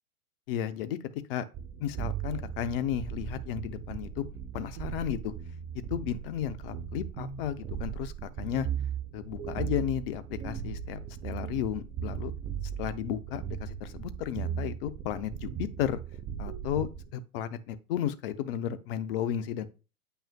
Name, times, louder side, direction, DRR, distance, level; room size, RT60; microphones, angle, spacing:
voice 1, 0.5-1.0 1.3-1.4 1.8-4.2 4.5-5.3 5.9-8.7 9.1-12.3 12.8-16.0 16.4-19.7, left 10 dB, 40° left, 0.7 m, -33 dB
sound 1, 1.5-17.1, right 8 dB, 25° right, 0.9 m, -37 dB
8.7 x 5.6 x 2.2 m
figure-of-eight pair, 100°, 45 cm